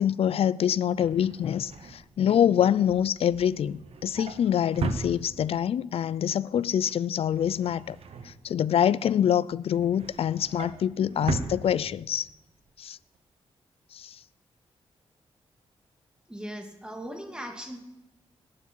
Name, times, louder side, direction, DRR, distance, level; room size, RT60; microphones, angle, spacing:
voice 1, 0.0-8.0 8.2-12.3 12.8-13.0 13.9-14.2, left 9 dB, 70° left, 0.4 m, -25 dB
Drawer open or close, 0.7-5.8 6.1-6.5 6.7-8.9 9.3-12.3 12.7-12.9 13.1-13.2, right 4 dB, 70° right, 1.2 m, -38 dB
voice 2, 16.3-17.8, equal, 10° right, 2.5 m, -38 dB
18.0 x 10.5 x 4.6 m
cardioid pair, 100°, 10 cm